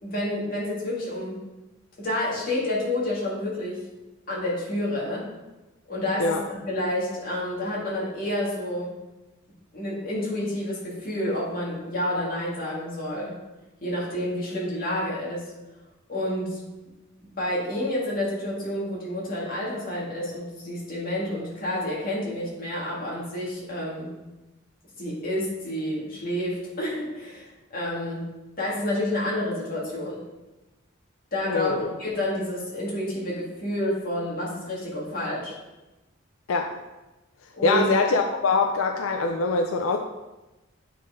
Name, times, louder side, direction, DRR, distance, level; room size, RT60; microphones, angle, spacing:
voice 1, 0.0-1.4 2.0-3.8 4.3-5.3 5.9-8.9 9.7-13.4 13.8-15.5 16.1-16.6 17.2-24.1 25.0-27.4 27.7-28.3 28.6-30.2 31.3-35.5 37.6-37.8, left 1 dB, 45° left, -6 dB, 2.1 m, -29 dB
voice 2, 31.5-31.9 36.5-36.8 37.6-40.0, left 3 dB, 85° left, 4 dB, 0.4 m, -23 dB
8.3 x 4.2 x 3.6 m, 1.1 s
head